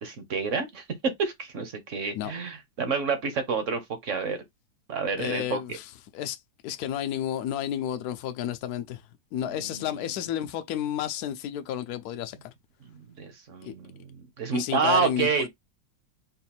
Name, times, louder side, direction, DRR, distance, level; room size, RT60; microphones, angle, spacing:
voice 1, 0.0-4.4 4.9-5.8 9.5-10.1 12.8-15.5, right 5 dB, 50° right, 1.1 m, -29 dB
voice 2, 5.2-5.8 6.1-6.4 6.6-9.0 9.3-12.4 13.6-13.7 14.5-15.5, left 10 dB, 65° left, 1.0 m, -31 dB
4.0 x 2.6 x 4.2 m
omnidirectional pair, 2.0 m